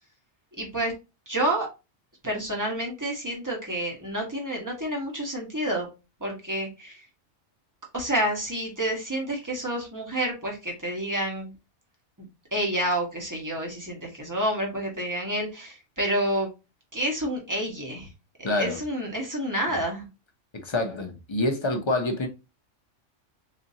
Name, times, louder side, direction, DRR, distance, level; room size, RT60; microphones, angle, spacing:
voice 1, 0.6-0.9 1.3-1.7 2.2-5.9 6.2-7.1 7.9-11.5 12.5-16.5 16.9-18.1 18.4-20.1, right 1 dB, 15° right, 1.1 m, -29 dB
voice 2, 18.4-18.8 20.5-22.3, left 2 dB, 35° left, 0.5 m, -27 dB
3.9 x 2.8 x 2.7 m
omnidirectional pair, 1.3 m